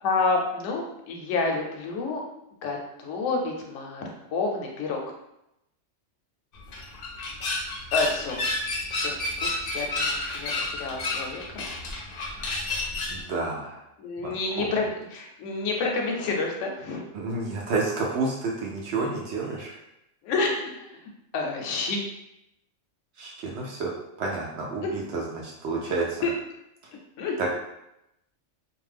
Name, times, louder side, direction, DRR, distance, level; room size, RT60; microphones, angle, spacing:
voice 1, 0.0-2.2 2.6-4.0 4.3-5.0 7.9-8.4 8.9-9.5 9.7-11.4 14.0-17.0 20.2-20.9 21.3-22.0 24.8-24.9 26.2-26.3 27.2-27.5, left 3 dB, 80° left, 1 dB, 0.9 m, -29 dB
sound 1, 6.5-13.2, left 2 dB, 60° left, 0.7 m, -30 dB
voice 2, 13.1-13.8 14.6-14.7 17.1-19.7 23.2-23.9 24.2-26.2 27.4-27.5, right 3 dB, 70° right, -2 dB, 0.8 m, -29 dB
2.5 x 2.2 x 3.2 m, 0.85 s
omnidirectional pair, 1.3 m